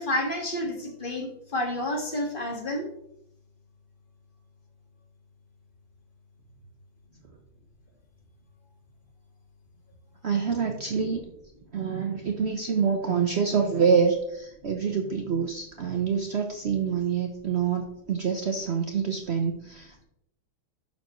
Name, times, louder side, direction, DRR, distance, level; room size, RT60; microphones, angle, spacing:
voice 1, 0.0-2.9, left 1 dB, 25° left, 1 dB, 1.7 m, -30 dB
voice 2, 10.2-11.2 11.7-20.0, right 6 dB, 90° right, 4 dB, 0.5 m, -26 dB
11.0 x 7.1 x 3.1 m, 0.78 s
omnidirectional pair, 2.2 m